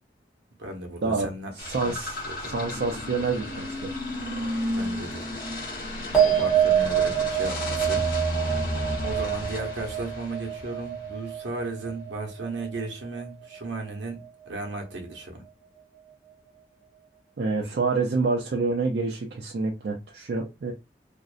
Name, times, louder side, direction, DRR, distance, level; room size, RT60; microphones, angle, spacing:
voice 1, 0.6-1.5 1.8-2.0 2.3-2.5 4.7-5.2 6.2-8.0 9.0-14.2 14.5-15.4, right 2 dB, 80° right, 0.8 m, -35 dB
sound 1, 1.6-11.1, left 1 dB, 50° left, 0.9 m, -33 dB
voice 2, 1.6-4.0 17.4-20.7, right 4 dB, 60° right, 0.4 m, -27 dB
sound 2, 6.1-12.8 13.1-13.8, right 9 dB, 5° right, 0.9 m, -26 dB
2.6 x 2.0 x 2.4 m
head